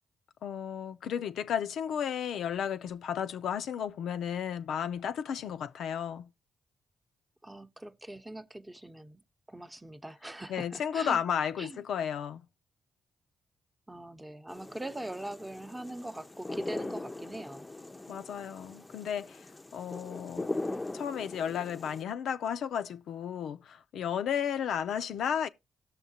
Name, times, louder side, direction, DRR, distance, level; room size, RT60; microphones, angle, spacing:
voice 1, 0.4-6.3 10.5-12.4 18.1-19.5 19.7-20.5 20.9-25.5, left 8 dB, 80° left, 0.4 m, -33 dB
voice 2, 7.4-9.2 9.5-11.2 11.6-11.8 13.9-17.7, right 1 dB, 15° right, 0.7 m, -41 dB
sound 1, 14.5-22.0, left 2 dB, 20° left, 0.5 m, -40 dB
17.5 x 6.4 x 2.8 m
supercardioid pair, 60°, 0 cm